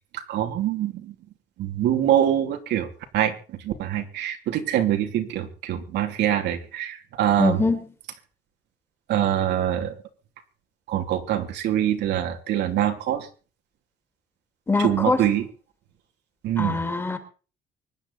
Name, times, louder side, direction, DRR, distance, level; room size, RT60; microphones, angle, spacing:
voice 1, 0.1-1.1 1.6-2.9 3.1-7.6 9.1-9.9 10.9-13.3 14.8-15.5 16.4-16.8, right 11 dB, 90° right, 3.0 m, -24 dB
voice 2, 7.4-7.8 14.7-15.2 16.6-17.2, left 3 dB, 15° left, 2.3 m, -23 dB
24.5 x 10.5 x 4.2 m
cardioid pair, 180°, 17 cm